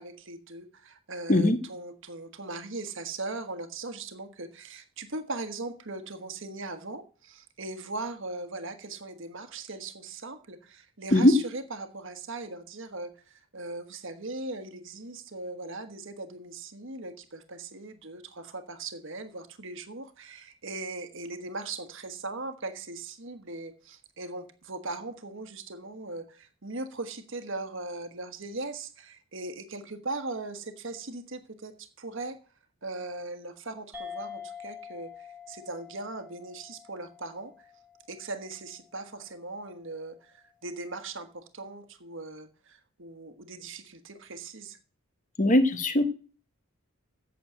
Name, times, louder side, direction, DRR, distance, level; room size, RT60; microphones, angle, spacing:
voice 1, 0.0-32.4 32.8-37.7 38.1-44.8, right 2 dB, 55° right, 8 dB, 1.4 m, -39 dB
sound 1, 33.9-38.8, left 7 dB, 5° right, 1.7 m, -46 dB
voice 2, 45.4-46.0, left 1 dB, 35° left, 9 dB, 1.4 m, -20 dB
8.4 x 6.6 x 8.0 m, 0.38 s
head